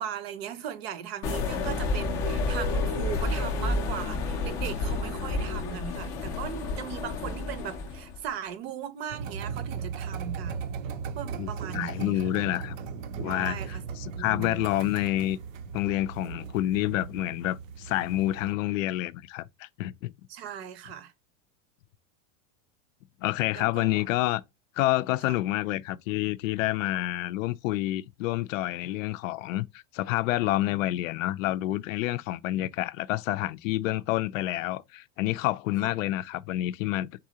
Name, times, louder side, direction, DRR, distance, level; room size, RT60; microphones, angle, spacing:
voice 1, 0.0-10.7 11.0-12.4 13.2-14.7 20.3-21.1 23.5-24.0 25.3-25.4 35.8-35.9, right 9 dB, 55° right, 0.6 m, -38 dB
sound 1, 1.2-8.2, left 3 dB, 20° left, 0.4 m, -30 dB
sound 2, 9.1-18.5, right 6 dB, 85° right, 0.7 m, -37 dB
voice 2, 11.4-12.8 13.2-15.4 15.7-20.1 23.2-24.4 24.8-37.1, left 16 dB, 80° left, 0.5 m, -28 dB
4.1 x 3.6 x 2.8 m
supercardioid pair, 180°, 38 cm